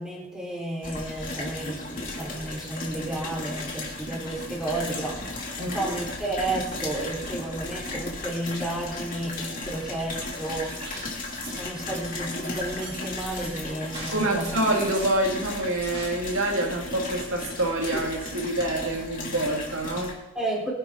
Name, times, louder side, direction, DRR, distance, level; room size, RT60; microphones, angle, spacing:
voice 1, 0.0-10.7 11.4-14.5 20.3-20.7, right 1 dB, 5° right, -5 dB, 4.6 m, -32 dB
sound 1, 0.8-20.1, left 2 dB, 35° left, 3.0 m, -35 dB
sound 2, 10.6-16.4, right 3 dB, 25° right, 2.9 m, -43 dB
voice 2, 14.1-20.2, right 1 dB, 60° right, 0 dB, 2.4 m, -26 dB
24.5 x 11.0 x 4.0 m, 1.0 s
head